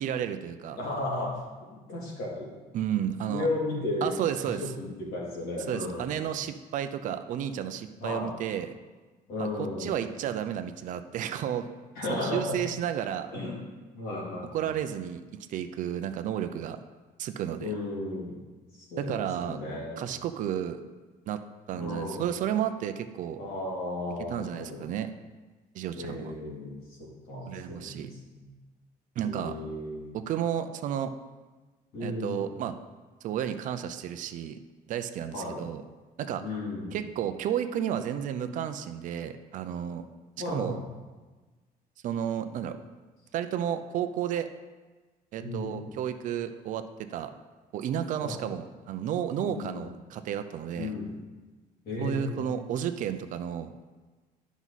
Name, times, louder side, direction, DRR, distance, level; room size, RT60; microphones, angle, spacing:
voice 1, 0.0-0.8 2.7-3.5 4.0-4.6 5.7-8.7 9.4-9.5 9.8-11.7 12.1-13.3 14.5-16.8 17.2-17.7 19.0-19.6 20.0-20.8 21.3-21.4 21.7-23.4 24.3-25.1 25.7-26.3 27.5-28.1 29.2-29.6 30.1-31.1 32.0-32.7 33.2-34.6 34.9-35.8 36.2-36.4 36.9-40.1 40.5-40.8 42.0-42.8 43.3-44.5 45.3-46.9 47.1-47.3 47.7-50.9 52.0-53.7, right 9 dB, 55° right, 9 dB, 0.5 m, -32 dB
voice 2, 0.8-1.3 1.6-2.5 3.3-4.1 4.6-6.2 8.0-8.3 9.3-10.0 11.9-12.6 13.3-13.6 13.9-14.8 17.6-18.4 18.8-19.1 19.4-20.0 21.8-22.3 23.4-24.8 25.9-28.4 29.2-30.2 31.9-32.4 35.3-35.6 36.4-37.0 40.4-40.9 45.4-45.9 48.2-48.4 49.5-49.8 50.7-51.1 51.8-52.5, left 2 dB, 65° left, -5 dB, 3.1 m, -34 dB
11.0 x 6.0 x 4.1 m, 1.3 s
cardioid pair, 170°, 16 cm